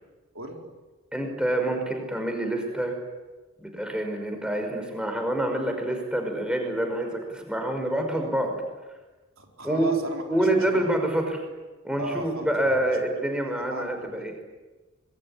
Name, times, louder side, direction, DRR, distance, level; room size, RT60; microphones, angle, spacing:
voice 1, 0.3-0.7 9.4-10.2 10.6-10.9 12.0-12.8 13.6-14.5, right 2 dB, 70° right, 2 dB, 4.1 m, -36 dB
voice 2, 1.1-2.9 3.6-8.6 9.6-9.9 10.3-11.4 11.8-14.3, right 1 dB, 5° right, 4 dB, 5.4 m, -27 dB
26.0 x 22.5 x 10.0 m, 1.2 s
head